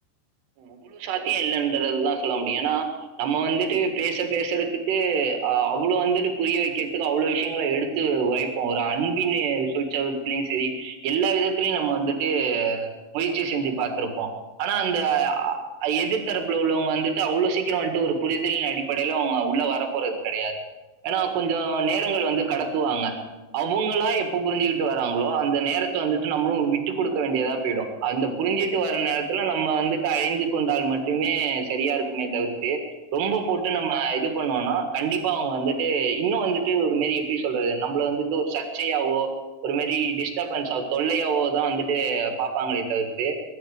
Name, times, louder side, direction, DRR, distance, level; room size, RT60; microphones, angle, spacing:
voice 1, 0.6-2.9 3.2-12.9 13.1-14.3 14.6-20.5 21.0-23.1 23.5-32.8 33.1-39.3 39.6-43.3, right 6 dB, 65° right, 4 dB, 3.5 m, -25 dB
22.0 x 10.5 x 5.0 m, 1.1 s
omnidirectional pair, 5.7 m